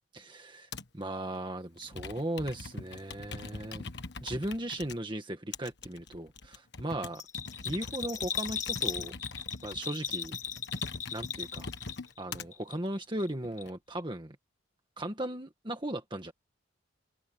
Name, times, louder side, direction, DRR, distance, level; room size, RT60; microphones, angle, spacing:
voice 1, 0.1-3.9 4.2-6.5 6.8-7.2 7.6-9.2 9.6-10.3 11.1-11.7 12.2-14.3 15.0-16.3, right 1 dB, 25° right, 1.7 m, -37 dB
Computer keyboard, 0.7-1.0 1.8-5.0 5.5-12.5 13.1-13.7, left 3 dB, 55° left, 1.6 m, -43 dB
Bell, 7.1-12.2 12.5-13.3 13.6-13.7, left 8 dB, 35° left, 1.6 m, -37 dB
open air
head